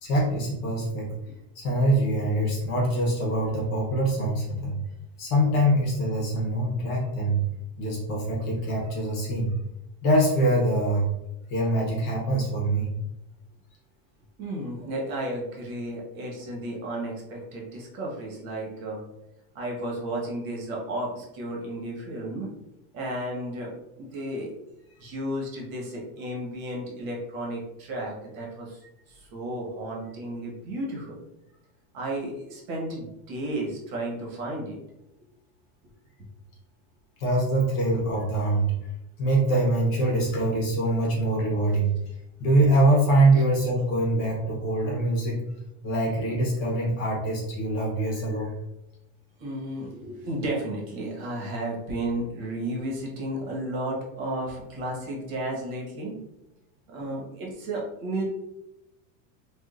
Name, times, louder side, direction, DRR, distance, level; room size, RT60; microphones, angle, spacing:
voice 1, 0.0-1.1 1.6-4.8 5.2-7.4 7.8-9.5 10.0-11.1 11.5-12.9 37.2-38.7 39.2-41.9 42.4-45.4 45.8-48.5, right 1 dB, 30° left, -2 dB, 0.7 m, -24 dB
voice 2, 14.4-19.0 19.5-22.5 22.9-24.5 25.0-31.2 31.9-34.8 49.4-56.2 56.9-58.2, right 1 dB, 75° right, -2 dB, 1.3 m, -33 dB
3.5 x 2.4 x 2.4 m, 0.88 s
supercardioid pair, 180°, 41 cm